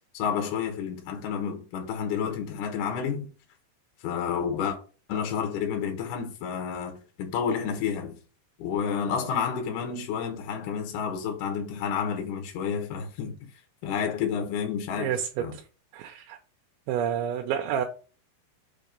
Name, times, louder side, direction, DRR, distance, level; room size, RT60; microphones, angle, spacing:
voice 1, 0.1-3.3 4.0-4.8 5.1-8.2 8.6-13.4 13.8-15.1 15.4-15.5, left 7 dB, 85° left, 1.8 m, -30 dB
voice 2, 15.0-15.6 15.9-16.4 16.9-17.9, right 9 dB, 80° right, 2.9 m, -29 dB
7.2 x 2.9 x 5.2 m
omnidirectional pair, 5.6 m